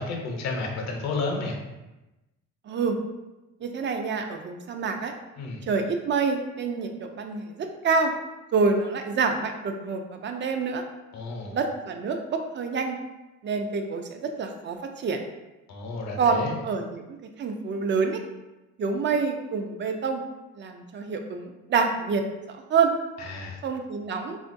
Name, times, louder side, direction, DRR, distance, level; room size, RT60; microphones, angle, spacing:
voice 1, 0.0-1.6 5.4-5.6 11.1-11.6 15.7-16.6 23.2-23.6, left 3 dB, 60° left, 1 dB, 0.8 m, -31 dB
voice 2, 2.7-3.0 3.6-5.1 5.6-8.1 8.5-10.8 11.5-13.0 13.4-15.2 16.2-18.2 18.8-20.2 20.6-22.2 22.5-22.9 23.6-24.4, right 5 dB, 35° right, 5 dB, 0.5 m, -27 dB
3.7 x 2.5 x 2.5 m, 1.0 s
supercardioid pair, 85°, 31 cm